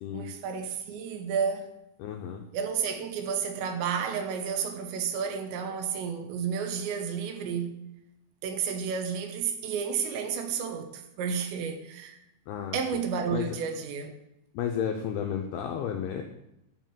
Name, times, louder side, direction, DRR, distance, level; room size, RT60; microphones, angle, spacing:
voice 1, 0.1-1.7 2.5-7.8 8.4-12.2 12.7-14.1, right 6 dB, 75° right, 3.1 m, -31 dB
voice 2, 2.0-2.4 12.5-12.8 13.3-13.5 14.5-16.2, left 8 dB, 85° left, 2.3 m, -32 dB
11.5 x 5.1 x 7.6 m
omnidirectional pair, 5.5 m